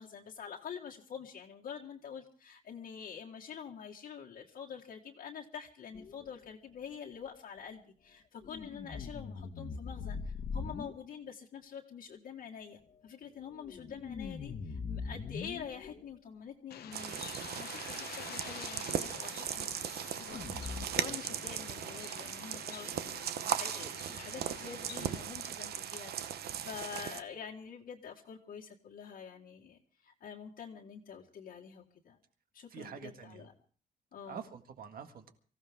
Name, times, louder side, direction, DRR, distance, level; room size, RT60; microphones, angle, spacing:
voice 1, 0.0-32.2 32.5-33.5 34.1-34.4, left 7 dB, 65° left, -2 dB, 1.7 m, -47 dB
sound 1, 5.9-6.3 8.4-10.9 13.5-16.0 20.3-20.9, left 5 dB, 50° left, 1.4 m, -41 dB
Bird, 16.7-25.2, left 10 dB, 85° left, 1.0 m, -49 dB
sound 2, 16.9-27.2, right 10 dB, 85° right, 0.9 m, -38 dB
voice 2, 32.7-33.5 34.3-35.3, right 7 dB, 65° right, 7 dB, 1.8 m, -46 dB
24.5 x 15.5 x 3.6 m, 0.41 s
cardioid pair, 145°, 16 cm